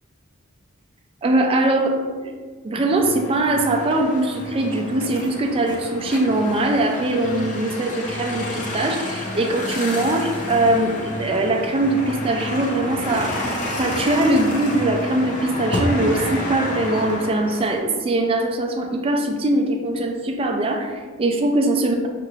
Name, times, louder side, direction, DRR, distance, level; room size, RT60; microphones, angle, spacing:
voice 1, 1.2-2.3 2.6-22.0, right 2 dB, 25° right, 2 dB, 0.3 m, -21 dB
sound 1, 2.9-17.8, left 1 dB, 35° left, 0.7 m, -29 dB
5.6 x 2.5 x 3.0 m, 1.4 s
head